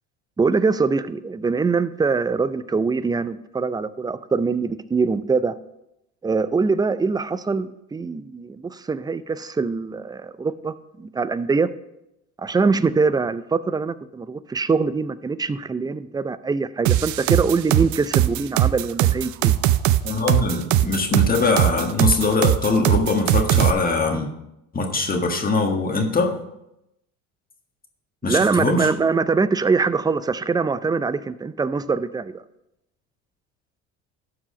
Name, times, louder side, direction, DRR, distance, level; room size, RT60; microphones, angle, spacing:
voice 1, 0.4-5.6 6.2-11.7 12.4-19.5 28.2-32.4, right 4 dB, 10° right, 14 dB, 0.4 m, -23 dB
sound 1, 16.9-23.7, right 13 dB, 60° right, 0.5 m, -19 dB
voice 2, 20.0-24.3 24.7-26.4 28.2-28.9, left 3 dB, 25° left, 2 dB, 1.6 m, -22 dB
12.5 x 4.9 x 5.0 m, 0.86 s
supercardioid pair, 85°, 32 cm